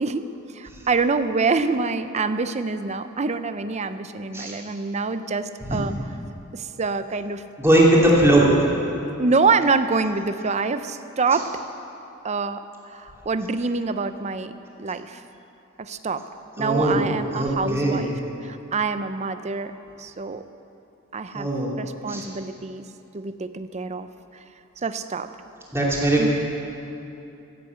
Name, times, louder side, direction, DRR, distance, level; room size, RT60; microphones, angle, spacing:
voice 1, 0.0-5.9 6.5-7.4 9.2-11.6 12.2-14.5 14.8-15.2 15.8-16.2 16.6-18.1 18.4-19.7 20.0-20.4 21.1-21.5 21.8-22.9 23.1-24.1 24.8-25.3 26.2-26.3, right 4 dB, 30° right, 11 dB, 0.5 m, -26 dB
voice 2, 7.6-8.5 16.6-17.1 17.3-18.0 21.3-21.7 22.1-22.2 25.7-26.3, right 1 dB, 10° right, -5 dB, 2.7 m, -19 dB
15.5 x 8.6 x 8.1 m, 2.8 s
head